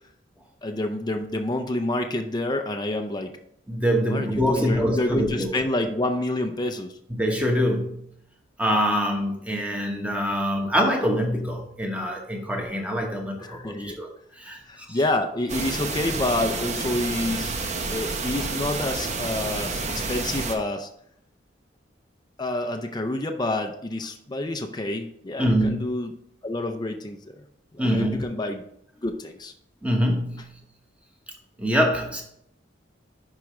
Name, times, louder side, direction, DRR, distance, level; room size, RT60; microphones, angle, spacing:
voice 1, 0.6-3.3 4.1-6.9 13.4-14.0 14.7-20.9 22.4-26.1 26.4-27.2 27.7-28.6 29.0-29.5, left 1 dB, 20° left, 0.5 m, -28 dB
voice 2, 3.7-5.5 7.1-8.1 8.6-14.1 14.4-14.6 14.9-15.0 25.4-25.9 27.8-28.2 29.8-30.5 31.6-32.2, equal, 5° right, 1.2 m, -24 dB
sound 1, 15.5-20.6, right 3 dB, 40° right, 0.8 m, -29 dB
10.5 x 4.8 x 3.2 m
head